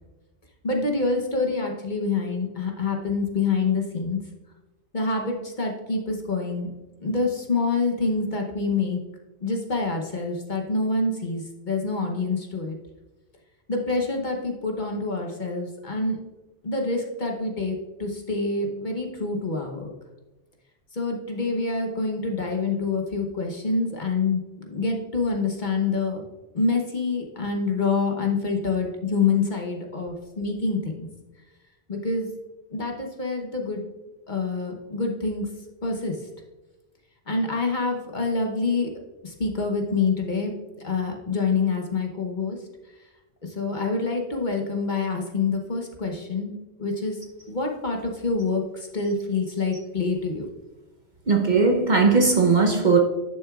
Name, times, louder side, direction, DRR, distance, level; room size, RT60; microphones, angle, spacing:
voice 1, 0.6-4.2 4.9-6.7 7.0-9.0 9.4-12.8 13.7-16.2 16.6-19.9 20.9-26.2 26.5-31.1 31.9-32.3 32.7-33.9 34.3-35.5 35.8-36.1 37.3-38.9 39.2-42.6 43.4-47.2 47.5-50.5, left 3 dB, 45° left, 1.0 m, -26 dB
voice 2, 51.3-53.0, right 4 dB, 45° right, 0.9 m, -18 dB
10.5 x 6.3 x 2.4 m
omnidirectional pair, 1.2 m